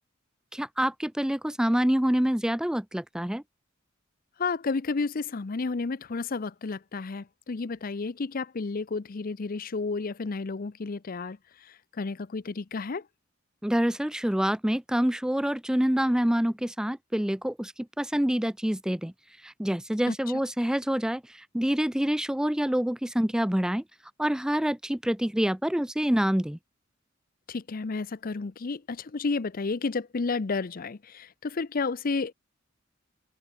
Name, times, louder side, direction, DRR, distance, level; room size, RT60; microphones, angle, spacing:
voice 1, 0.5-3.4 13.6-19.1 19.4-23.8 24.2-26.6, equal, 5° right, 0.4 m, -26 dB
voice 2, 4.4-13.1 20.1-20.2 27.5-32.3, left 4 dB, 45° left, 0.6 m, -31 dB
head